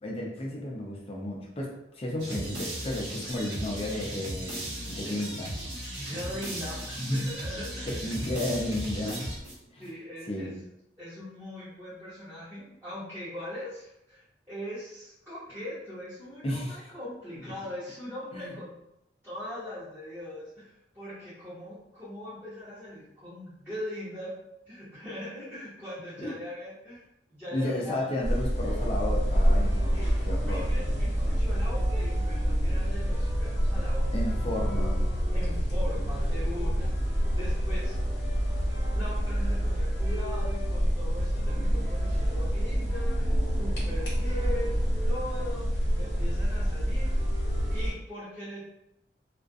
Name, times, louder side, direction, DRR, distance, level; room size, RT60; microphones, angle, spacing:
voice 1, 0.0-5.5 7.0-7.3 7.9-9.3 9.7-9.8 10.3-10.6 16.4-16.8 18.3-18.6 26.2-26.3 27.5-30.7 34.1-35.1, left 1 dB, 35° left, -1 dB, 0.5 m, -33 dB
sound 1, 2.2-9.8, right 1 dB, 85° right, 1.0 m, -37 dB
voice 2, 6.0-8.1 9.8-10.5 11.0-18.7 19.2-24.3 24.7-27.0 27.3-28.1 29.9-30.1 30.4-34.3 35.3-37.9 38.9-44.8 45.1-45.7 46.0-47.2 47.7-48.6, left 1 dB, 10° right, -13 dB, 0.8 m, -40 dB
sound 2, 28.2-47.9, equal, 80° left, 0.9 m, -27 dB
2.4 x 2.1 x 2.5 m, 0.82 s
head